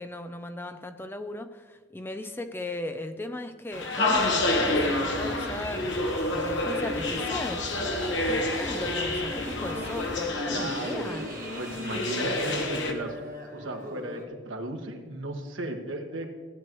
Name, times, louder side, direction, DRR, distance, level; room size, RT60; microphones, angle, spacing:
voice 1, 0.0-7.7 8.2-11.2, left 1 dB, 10° left, 8 dB, 0.4 m, -37 dB
sound 1, 3.7-12.9, left 2 dB, 70° left, 1.3 m, -29 dB
sound 2, 4.1-10.2, right 1 dB, 70° right, 2.8 m, -40 dB
sound 3, 7.7-14.2, equal, 45° right, 1.5 m, -40 dB
voice 2, 10.5-13.2 13.5-16.3, right 1 dB, 90° right, 3 dB, 1.4 m, -36 dB
15.0 x 9.4 x 3.1 m, 1.5 s
head